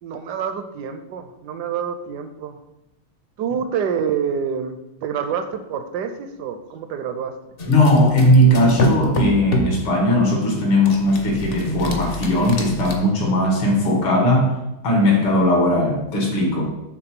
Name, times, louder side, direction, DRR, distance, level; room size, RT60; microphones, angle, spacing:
voice 1, 0.0-2.6 3.4-7.4 16.5-16.7, right 7 dB, 75° right, 8 dB, 1.0 m, -27 dB
voice 2, 7.6-14.5 14.8-16.7, left 1 dB, 85° left, 0 dB, 2.4 m, -18 dB
sound 1, 7.6-9.8 10.9-13.0, left 1 dB, 55° left, 0.6 m, -25 dB
6.7 x 3.7 x 5.9 m, 0.93 s
omnidirectional pair, 2.2 m